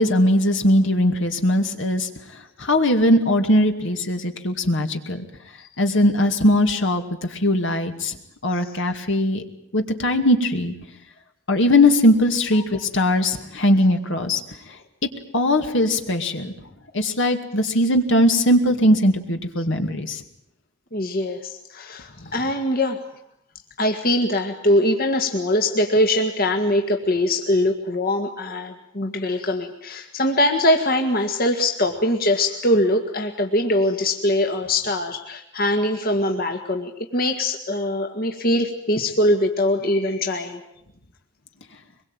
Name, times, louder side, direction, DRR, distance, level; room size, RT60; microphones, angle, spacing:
voice 1, 0.0-5.2 5.8-8.2 8.4-9.4 9.7-10.7 11.5-14.4 14.7-14.8 15.0-16.5 16.9-20.2 22.2-22.3, left 1 dB, 70° left, 5 dB, 2.4 m, -20 dB
voice 2, 20.9-23.0 23.8-40.6, left 1 dB, 50° left, 4 dB, 2.0 m, -22 dB
24.5 x 22.0 x 9.0 m, 0.76 s
head